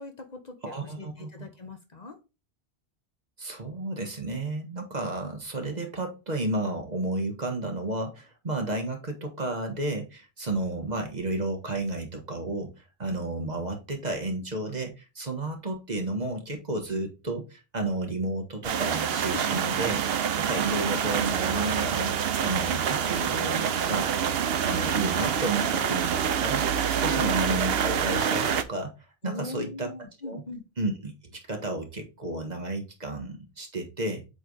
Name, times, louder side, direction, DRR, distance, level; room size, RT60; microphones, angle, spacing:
voice 1, 0.0-2.2 19.3-19.8 27.0-27.2 29.2-30.6, left 3 dB, 45° left, 5 dB, 1.1 m, -41 dB
voice 2, 0.6-1.3 3.4-20.0 20.3-22.1 22.4-24.1 24.6-28.9 29.2-29.9 30.2-30.4 30.8-34.2, right 2 dB, 45° right, 4 dB, 1.4 m, -32 dB
sound 1, 18.6-28.6, right 8 dB, 70° right, 0.9 m, -26 dB
7.9 x 3.3 x 3.9 m, 0.28 s
omnidirectional pair, 1.1 m